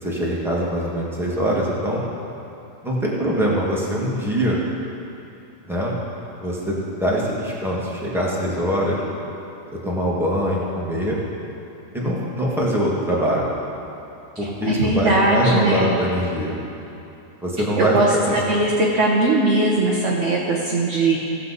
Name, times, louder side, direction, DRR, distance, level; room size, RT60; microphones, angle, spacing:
voice 1, 0.0-2.0 2.8-4.6 5.7-5.9 6.4-9.0 9.8-11.2 11.9-13.5 14.4-16.6 17.4-18.4, equal, ahead, -5 dB, 1.6 m, -23 dB
voice 2, 14.6-15.9 17.8-18.1 18.3-21.2, right 2 dB, 50° right, -4 dB, 1.3 m, -19 dB
17.0 x 7.5 x 4.1 m, 2.8 s
omnidirectional pair, 1.8 m